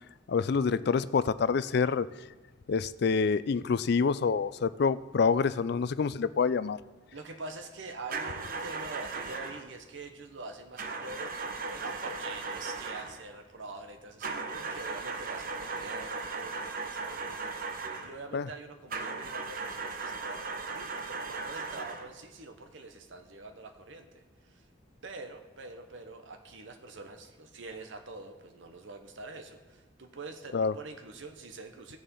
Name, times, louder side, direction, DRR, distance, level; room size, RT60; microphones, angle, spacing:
voice 1, 0.3-2.1 2.7-6.8 18.3-18.5 30.5-30.7, left 5 dB, 60° left, 16 dB, 0.4 m, -27 dB
voice 2, 7.1-24.6 25.0-32.0, right 3 dB, 80° right, 6 dB, 1.0 m, -45 dB
sound 1, 8.1-9.7 10.8-13.2 14.2-18.2 18.9-22.1, right 4 dB, 50° right, 0.8 m, -37 dB
16.0 x 7.1 x 5.4 m, 1.2 s
head